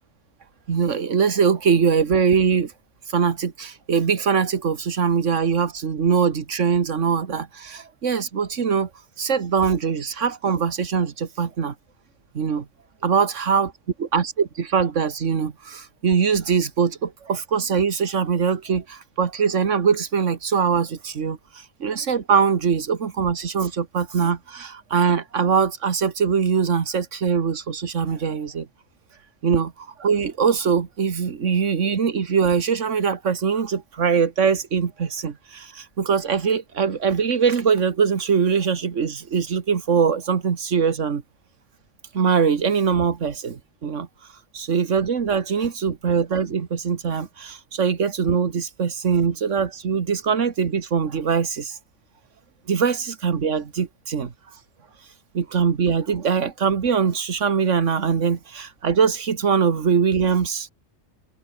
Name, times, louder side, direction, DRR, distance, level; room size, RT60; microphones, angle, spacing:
voice 1, 0.7-2.7 3.1-8.9 9.2-11.7 12.3-12.7 13.0-13.7 14.0-28.7 29.4-41.2 42.1-44.1 44.5-51.8 52.7-54.3 55.3-60.7, right 6 dB, 90° right, 1.8 m, -22 dB
omnidirectional pair, 1.2 m